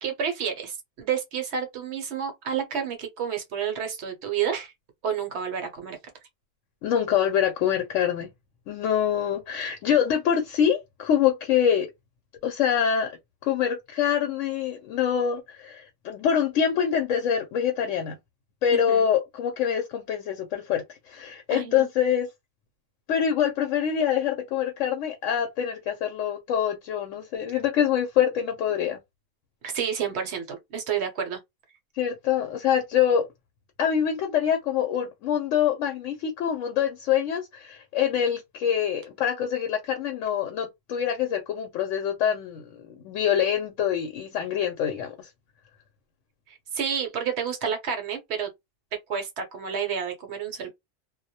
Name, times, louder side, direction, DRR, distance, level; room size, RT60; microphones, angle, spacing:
voice 1, 0.0-4.7 5.0-6.0 18.9-19.1 21.5-21.9 29.6-31.4 46.5-48.5 49.1-50.7, right 7 dB, 65° right, 0.9 m, -30 dB
voice 2, 6.8-8.3 8.7-11.9 12.4-13.1 13.4-18.2 18.6-22.3 23.1-29.0 32.0-33.3 33.8-45.3, left 8 dB, 80° left, 0.9 m, -25 dB
2.2 x 2.0 x 2.7 m
omnidirectional pair, 1.3 m